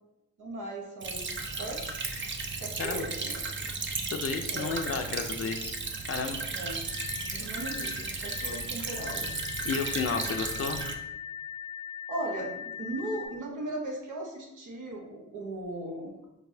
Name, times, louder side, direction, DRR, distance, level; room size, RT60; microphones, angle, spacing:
voice 1, 0.4-3.4 4.5-4.8 6.5-6.8 7.3-9.3 12.1-16.1, right 1 dB, 55° right, 0 dB, 1.1 m, -38 dB
Stream / Trickle dribble, 1.0-10.9, right 4 dB, 30° right, 0.6 m, -35 dB
voice 2, 4.1-5.8 6.1-6.4 9.6-10.8, left 5 dB, 40° left, 5 dB, 0.5 m, -32 dB
sound 1, 6.8-13.3, left 8 dB, 80° right, 1.1 m, -40 dB
4.5 x 2.7 x 2.7 m, 0.92 s
supercardioid pair, 50°, 36 cm